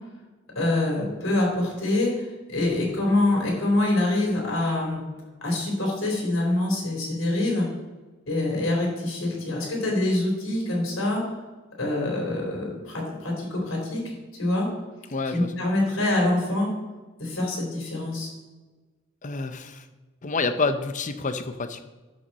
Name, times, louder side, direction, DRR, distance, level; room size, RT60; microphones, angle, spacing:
voice 1, 0.6-5.0 5.4-7.7 8.3-11.3 11.8-14.7 15.3-16.7 17.2-18.3, left 2 dB, 85° left, -2 dB, 3.4 m, -25 dB
voice 2, 15.1-15.5 19.2-19.8 20.2-21.9, left 3 dB, 40° left, 10 dB, 0.7 m, -28 dB
12.0 x 6.1 x 4.1 m, 1.3 s
head